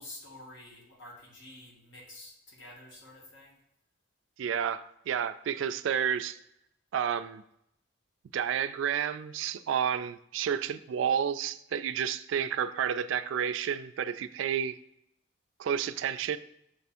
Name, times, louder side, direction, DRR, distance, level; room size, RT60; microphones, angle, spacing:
voice 1, 0.0-3.6, left 1 dB, 70° left, -2 dB, 1.5 m, -49 dB
voice 2, 4.4-6.4 6.9-7.4 8.3-14.7 15.6-16.4, right 8 dB, 75° right, 12 dB, 0.3 m, -30 dB
6.6 x 3.4 x 4.2 m, 0.78 s
head